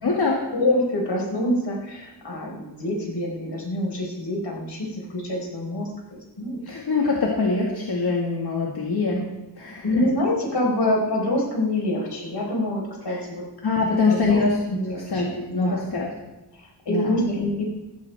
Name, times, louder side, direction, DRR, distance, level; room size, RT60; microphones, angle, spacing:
voice 1, 0.0-0.5 6.7-10.1 13.1-13.2 13.6-16.1 16.9-17.2, left 3 dB, 65° left, -2 dB, 2.0 m, -24 dB
voice 2, 0.5-5.9 6.4-6.6 9.8-13.4 13.8-14.4 14.7-15.8 16.5-17.6, left 1 dB, 80° left, -1 dB, 4.5 m, -26 dB
15.5 x 15.0 x 3.5 m, 1.0 s
wide cardioid pair, 130°, 41 cm